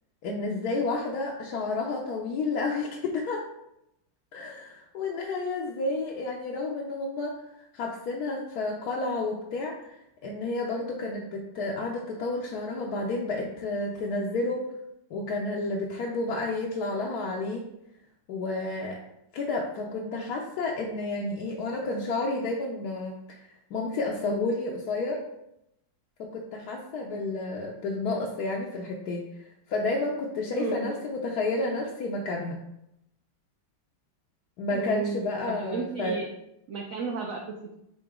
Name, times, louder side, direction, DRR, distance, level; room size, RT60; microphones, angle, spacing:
voice 1, 0.2-3.4 4.3-14.7 15.1-17.6 18.3-19.0 19.3-25.2 26.2-32.6 34.6-36.2, left 2 dB, 65° left, -1 dB, 1.1 m, -31 dB
voice 2, 30.5-31.0 34.7-36.3 36.7-37.7, right 5 dB, 60° right, 0 dB, 0.9 m, -33 dB
6.9 x 3.8 x 3.6 m, 0.82 s
omnidirectional pair, 2.0 m